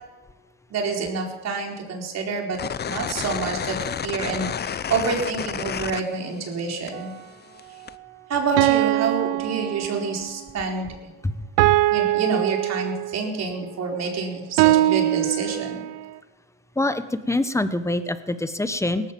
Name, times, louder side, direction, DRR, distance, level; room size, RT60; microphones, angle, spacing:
voice 1, 0.7-2.6 2.9-3.8 4.0-7.1 8.3-10.9 11.9-15.8, right 4 dB, 50° right, 1 dB, 4.5 m, -27 dB
sound 1, 2.5-6.6 6.9-7.9, left 8 dB, 30° left, 0.7 m, -30 dB
sound 2, 6.9-7.1 8.6-10.3 11.6-13.3 14.6-16.1, right 16 dB, 85° right, 0.9 m, -22 dB
voice 2, 16.8-19.1, left 2 dB, 10° left, 12 dB, 1.3 m, -25 dB
18.5 x 14.5 x 5.4 m, 1.1 s
supercardioid pair, 90°, 34 cm